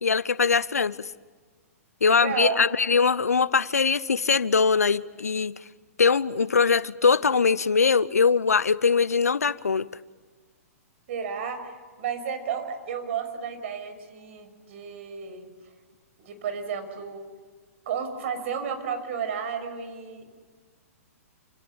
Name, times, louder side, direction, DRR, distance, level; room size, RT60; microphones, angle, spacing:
voice 1, 0.0-1.1 2.0-5.5 6.0-9.9, left 5 dB, 80° left, 0.9 m, -22 dB
voice 2, 2.1-2.6 11.1-15.5 16.2-17.2 17.9-20.2, right 7 dB, 55° right, 6.2 m, -32 dB
29.0 x 28.0 x 7.2 m
figure-of-eight pair, 115°, 8 cm